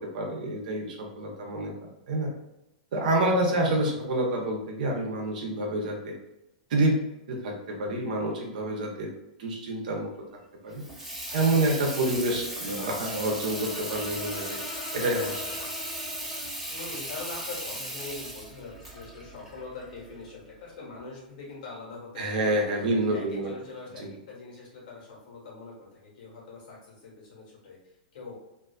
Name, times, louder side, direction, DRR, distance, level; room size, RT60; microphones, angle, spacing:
voice 1, 0.0-2.3 2.9-6.1 6.7-7.0 7.3-9.1 9.4-10.1 10.6-10.8 11.3-14.6 14.9-15.4 22.2-23.5 24.0-24.1, right 1 dB, 65° right, 1 dB, 0.7 m, -28 dB
voice 2, 3.3-4.1 11.3-11.6 12.0-12.1 16.7-22.4 22.7-28.4, left 3 dB, 70° left, -3 dB, 1.3 m, -43 dB
Water tap faucet / Sink (filling or washing), 10.7-20.3, right 1 dB, 5° right, 0.9 m, -37 dB
Brass instrument, 12.5-16.6, left 3 dB, 45° left, 0.5 m, -42 dB
2.6 x 2.5 x 2.3 m, 0.92 s
hypercardioid pair, 110°, 5 cm